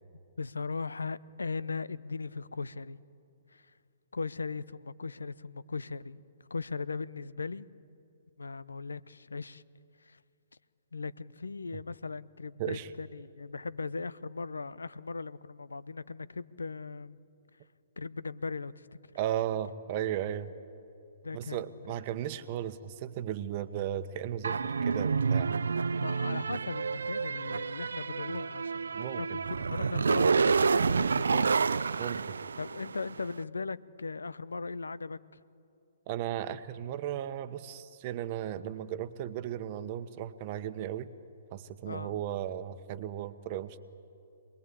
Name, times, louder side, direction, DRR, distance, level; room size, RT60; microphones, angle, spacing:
voice 1, 0.4-3.0 3.5-3.7 4.1-6.2 6.5-7.7 8.4-9.6 10.0-10.2 10.9-17.2 18.0-18.9 21.2-21.9 26.0-31.7 32.6-35.4 41.8-42.2, left 4 dB, 85° left, 18 dB, 0.7 m, -38 dB
voice 2, 19.1-20.5 21.3-25.5 28.9-29.2 32.0-32.3 36.1-41.1 41.5-43.8, right 11 dB, 40° right, 12 dB, 1.1 m, -35 dB
sound 1, 24.4-33.1, right 5 dB, 80° right, 0.5 m, -29 dB
27.0 x 20.5 x 8.5 m, 2.6 s
hypercardioid pair, 130°, 0 cm